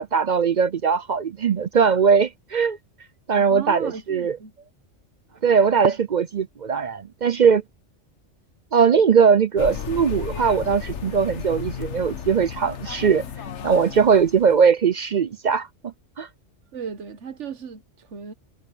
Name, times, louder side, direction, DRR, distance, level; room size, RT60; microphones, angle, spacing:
voice 1, 0.0-2.8 3.3-4.4 5.4-7.6 8.7-13.2 13.6-16.3, right 6 dB, 50° right, 0.6 m, -20 dB
voice 2, 3.3-4.5 16.7-18.3, right 7 dB, 70° right, 1.4 m, -36 dB
sound 1, 9.6-14.7, left 8 dB, 70° left, 1.3 m, -34 dB
omnidirectional pair, 1.3 m